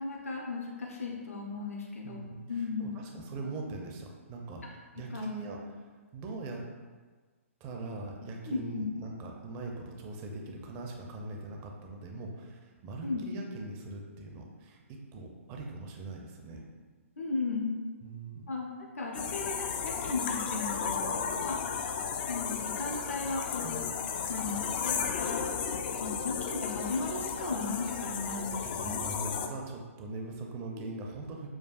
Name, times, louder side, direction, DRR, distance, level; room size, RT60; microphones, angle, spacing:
voice 1, 0.0-2.2 2.5-2.9 5.1-5.2 8.5-8.9 13.0-13.2 17.2-17.8 18.5-18.7 19.0-19.7 20.0-21.6 22.3-23.9 24.3-25.5 26.0-29.0 30.7-30.9, left 3 dB, 75° left, -2 dB, 0.8 m, -36 dB
voice 2, 2.0-4.6 4.9-6.7 7.6-16.6 18.0-18.5 23.6-23.8 28.6-31.5, right 2 dB, 25° right, 1 dB, 0.5 m, -41 dB
sound 1, 19.1-29.5, left 6 dB, 45° left, 0.3 m, -34 dB
6.9 x 2.3 x 2.4 m, 1.4 s
figure-of-eight pair, 130°, 8 cm